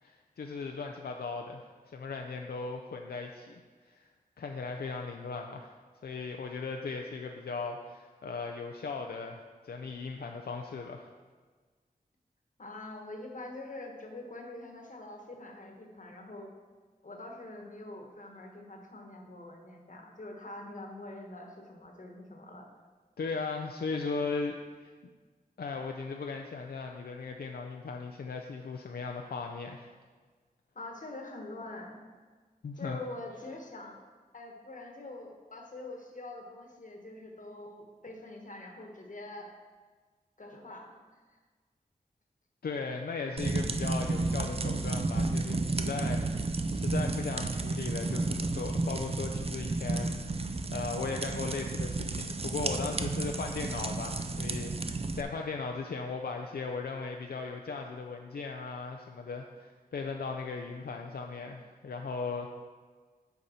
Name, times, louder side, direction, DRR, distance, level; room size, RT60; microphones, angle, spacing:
voice 1, 0.0-4.0 4.4-5.7 6.0-11.1 23.2-24.9 25.6-29.9 32.6-33.0 42.6-62.5, left 4 dB, 80° left, 3 dB, 0.5 m, -37 dB
voice 2, 12.6-16.5 17.0-22.7 30.7-32.0 32.7-34.0 34.3-39.5 40.4-41.4, left 2 dB, 55° left, 2 dB, 1.2 m, -45 dB
sound 1, 43.4-55.2, right 3 dB, 40° right, 0.5 m, -32 dB
8.2 x 5.3 x 4.3 m, 1.4 s
wide cardioid pair, 65°, 16 cm